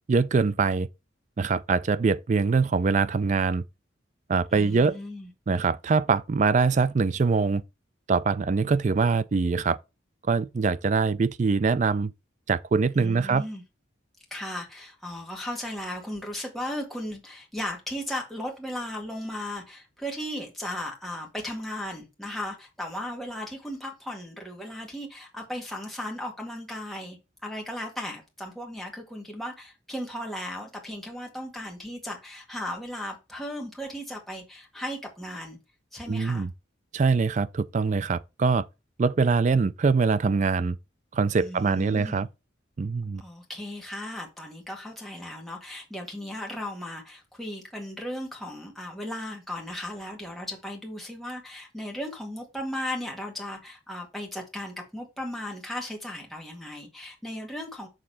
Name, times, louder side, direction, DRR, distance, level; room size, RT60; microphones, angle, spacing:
voice 1, 0.1-0.9 1.4-3.6 4.3-5.0 5.5-7.6 8.1-9.8 10.3-12.1 12.5-13.4 36.1-36.5 36.9-38.6 39.0-40.8 41.1-42.3 42.8-43.2, right 4 dB, 40° right, 0.3 m, -23 dB
voice 2, 4.5-5.3 12.9-13.6 14.3-35.6 35.9-36.5 41.4-42.3 43.2-57.9, left 1 dB, ahead, 1.8 m, -36 dB
6.6 x 3.7 x 5.6 m
head